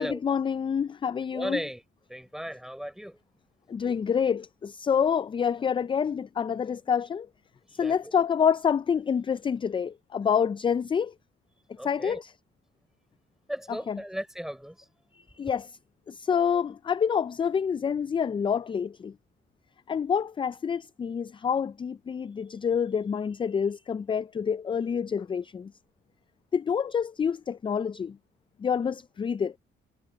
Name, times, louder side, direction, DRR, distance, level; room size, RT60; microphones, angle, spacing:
voice 1, 0.0-1.6 3.7-7.3 7.7-11.1 11.8-12.3 13.9-14.0 15.4-15.7 16.1-19.1 19.9-25.7 26.5-28.2 28.6-29.5, left 7 dB, 25° left, 0.3 m, -27 dB
voice 2, 1.3-1.8 2.1-3.2 7.7-8.1 11.8-12.2 13.5-14.9, equal, ahead, 4.5 m, -36 dB
cardioid pair, 90°, 20 cm